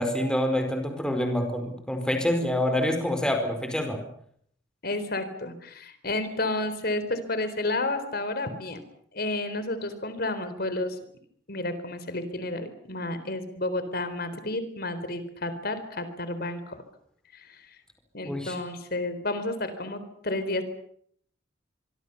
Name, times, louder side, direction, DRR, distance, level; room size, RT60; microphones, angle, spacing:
voice 1, 0.0-4.0 18.2-18.6, left 1 dB, 5° left, 5 dB, 4.7 m, -26 dB
voice 2, 4.8-8.8 9.1-11.0 11.5-16.8 17.3-17.7 18.1-20.6, left 2 dB, 55° left, 11 dB, 4.0 m, -31 dB
24.5 x 24.5 x 6.9 m, 0.65 s
head